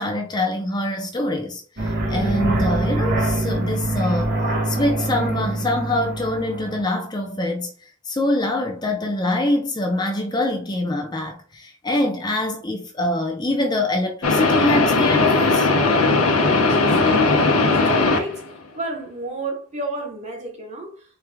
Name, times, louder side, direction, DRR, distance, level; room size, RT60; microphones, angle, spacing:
voice 1, 0.0-4.4 4.6-15.7, left 1 dB, 20° left, 0.6 m, -24 dB
sound 1, 1.8-6.8, right 2 dB, 50° right, 1.7 m, -24 dB
sound 2, 14.2-18.5, left 3 dB, 80° left, 0.8 m, -18 dB
voice 2, 16.7-18.5 18.7-21.2, right 2 dB, 30° right, 1.0 m, -32 dB
4.5 x 2.4 x 3.4 m
head